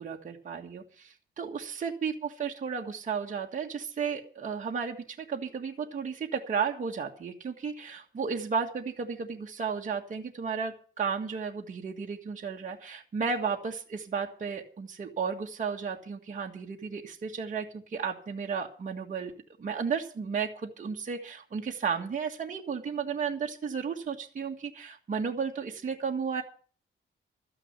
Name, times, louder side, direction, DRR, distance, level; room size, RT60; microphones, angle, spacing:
voice 1, 0.0-19.3 19.6-26.4, right 6 dB, 40° right, 0 dB, 1.6 m, -33 dB
13.0 x 9.8 x 8.1 m, 0.40 s
wide cardioid pair, 170°, 20 cm